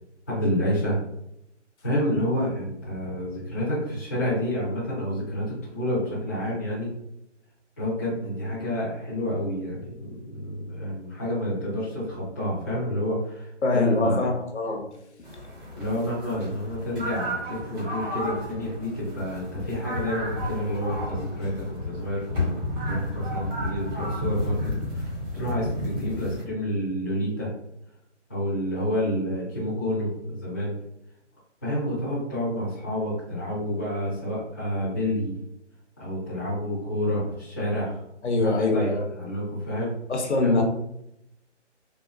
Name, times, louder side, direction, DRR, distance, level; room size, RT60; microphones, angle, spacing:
voice 1, 0.3-1.0 1.8-6.9 7.8-14.3 15.8-22.6 22.9-27.5 28.3-30.8 31.6-35.3 36.0-38.0 38.4-39.9 40.4-40.6, equal, 10° left, -10 dB, 0.5 m, -29 dB
voice 2, 13.6-14.9 15.2-15.3 38.2-39.0 40.1-40.6, left 2 dB, 65° left, 3 dB, 0.7 m, -24 dB
sound 1, 15.2-26.4, left 1 dB, 45° right, 1.3 m, -32 dB
3.6 x 2.3 x 2.3 m, 0.80 s
figure-of-eight pair, 155°, 36 cm